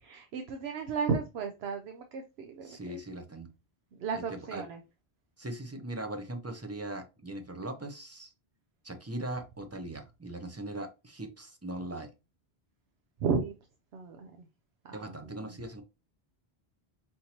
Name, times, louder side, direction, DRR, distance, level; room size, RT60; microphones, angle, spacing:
voice 1, 0.1-3.0 4.0-4.8 13.2-13.5 13.9-14.3 14.8-15.1, right 5 dB, 85° right, 5 dB, 0.9 m, -34 dB
voice 2, 2.6-3.5 4.1-4.7 5.4-8.3 8.8-12.1 14.9-15.8, right 1 dB, 20° right, 5 dB, 0.6 m, -40 dB
5.6 x 2.7 x 2.9 m, 0.27 s
omnidirectional pair, 1.0 m